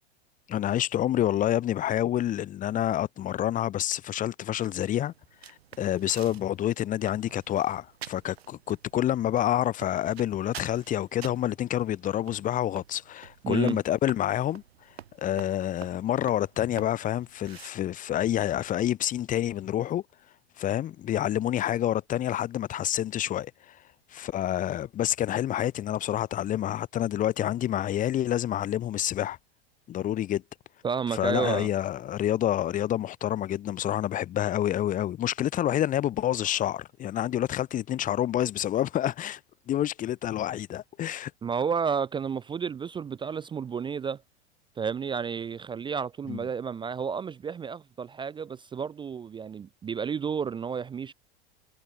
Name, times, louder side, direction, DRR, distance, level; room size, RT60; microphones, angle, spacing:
voice 1, 0.5-5.1 5.4-14.6 15.2-20.0 20.6-23.8 24.1-29.4 29.9-30.4 31.1-39.4 39.7-41.3 46.3-46.4, left 12 dB, 25° left, 0.6 m, -28 dB
sound 1, 4.6-17.7, right 11 dB, 75° right, 6.0 m, -49 dB
voice 2, 13.4-13.8 30.8-31.7 41.4-44.2 44.8-51.1, right 6 dB, 15° right, 0.5 m, -31 dB
hypercardioid pair, 90°, 31 cm